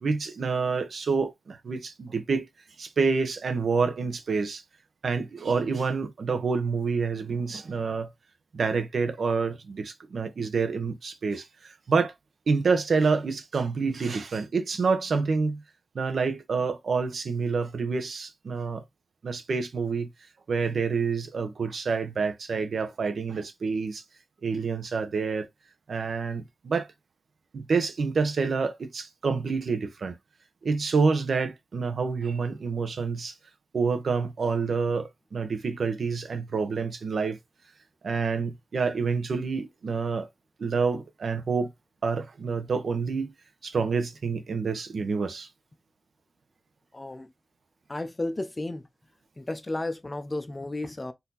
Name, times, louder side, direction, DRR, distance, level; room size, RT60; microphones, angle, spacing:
voice 1, 0.0-2.5 2.8-4.6 5.0-8.1 8.5-12.1 12.5-15.6 15.9-18.8 19.2-20.1 20.5-24.0 24.4-25.5 25.9-26.9 27.5-30.2 30.6-33.4 33.7-37.4 38.0-40.3 40.6-41.7 42.0-43.3 43.6-45.5, right 4 dB, 65° right, 0.9 m, -28 dB
voice 2, 46.9-47.3 47.9-48.8 49.4-51.1, left 2 dB, 25° left, 0.6 m, -33 dB
4.2 x 2.8 x 4.1 m
wide cardioid pair, 125°, 0 cm